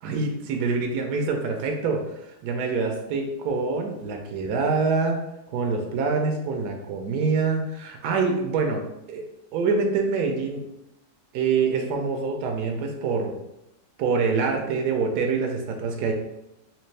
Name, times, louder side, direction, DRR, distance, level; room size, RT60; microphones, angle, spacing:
voice 1, 0.0-2.0 2.4-5.2 5.5-8.8 9.1-9.2 9.5-10.6 11.3-13.3 14.0-16.1, right 4 dB, 70° right, 2 dB, 1.0 m, -25 dB
3.3 x 2.9 x 3.2 m, 0.87 s
omnidirectional pair, 2.1 m